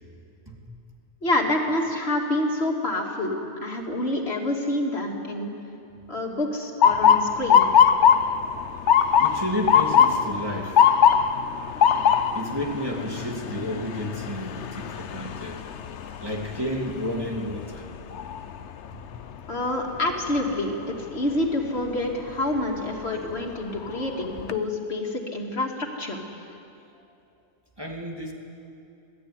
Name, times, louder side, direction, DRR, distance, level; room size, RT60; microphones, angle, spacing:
voice 1, 1.2-5.5 6.1-7.7 19.5-26.2, left 1 dB, 70° left, 0 dB, 2.9 m, -27 dB
Motor vehicle (road) / Siren, 6.8-18.7 19.2-19.6 20.4-20.7 22.6-22.8 23.3-23.4 23.8-24.5, left 8 dB, 90° left, 1.1 m, -21 dB
voice 2, 9.2-10.9 12.3-15.8 16.0-17.9 18.9-19.0 27.8-28.3, equal, 20° right, -1 dB, 2.6 m, -31 dB
26.0 x 17.0 x 9.8 m, 2.7 s
omnidirectional pair, 1.1 m